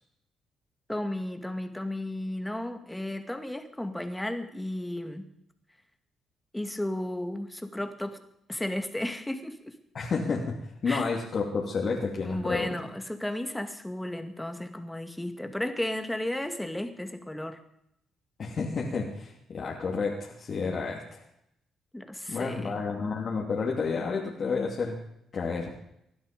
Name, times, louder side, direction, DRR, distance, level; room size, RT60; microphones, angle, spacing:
voice 1, 0.9-5.3 6.5-8.2 8.5-9.8 10.9-11.1 12.2-17.6 21.9-22.8, left 1 dB, 10° left, 7 dB, 2.1 m, -34 dB
voice 2, 9.9-12.8 18.4-21.2 22.3-25.0 25.3-25.7, left 4 dB, 50° left, -2 dB, 2.8 m, -30 dB
19.5 x 12.0 x 5.3 m, 0.77 s
cardioid pair, 75°, 0 cm